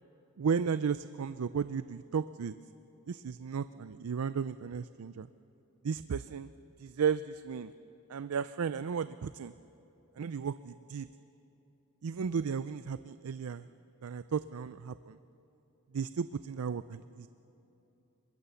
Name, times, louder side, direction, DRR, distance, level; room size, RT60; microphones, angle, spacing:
voice 1, 0.4-2.5 3.1-5.3 5.8-6.5 6.8-7.7 8.1-9.5 10.2-11.1 12.0-13.7 14.0-15.2 15.9-17.3, right 6 dB, 90° right, 14 dB, 0.4 m, -34 dB
23.5 x 21.0 x 7.0 m, 3.0 s
head